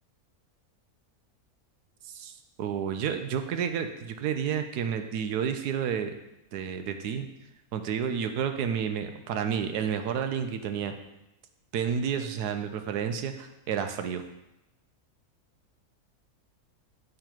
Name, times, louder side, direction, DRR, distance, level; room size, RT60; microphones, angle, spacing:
voice 1, 2.6-6.1 6.5-7.3 7.7-10.9 11.7-14.2, right 7 dB, 85° right, 7 dB, 1.2 m, -30 dB
8.6 x 3.8 x 4.5 m, 0.92 s
omnidirectional pair, 1.6 m